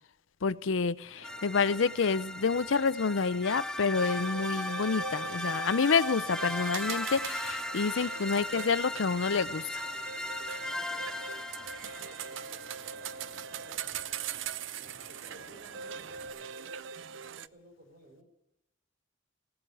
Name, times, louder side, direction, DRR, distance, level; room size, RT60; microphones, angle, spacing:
voice 1, 0.4-9.8, left 5 dB, 75° left, 16 dB, 0.6 m, -28 dB
sound 1, 1.0-16.3, equal, 85° right, 5.6 m, -53 dB
sound 2, 1.2-12.5, left 1 dB, 5° left, 0.5 m, -37 dB
sound 3, 4.0-17.5, right 7 dB, 65° right, 0.4 m, -41 dB
voice 2, 10.6-11.3 11.8-14.0 14.8-16.8 17.2-18.2, right 1 dB, 50° right, 1 dB, 4.6 m, -58 dB
17.5 x 7.8 x 9.3 m, 0.88 s
head